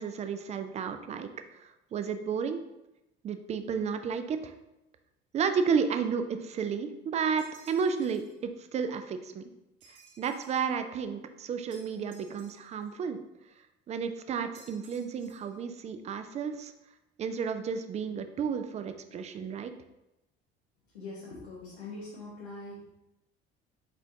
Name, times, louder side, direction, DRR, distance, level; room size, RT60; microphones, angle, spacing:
voice 1, 0.0-2.6 3.2-4.5 5.3-9.5 9.9-13.2 13.9-16.7 17.2-19.7, right 6 dB, 25° right, 9 dB, 0.3 m, -32 dB
sound 1, 7.4-8.4 9.8-10.7 11.7-12.9 14.5-15.6, right 4 dB, 50° right, 1.2 m, -57 dB
voice 2, 20.9-22.9, left 2 dB, 75° left, -6 dB, 1.0 m, -43 dB
4.5 x 4.1 x 2.7 m, 0.91 s
figure-of-eight pair, 55°, 31 cm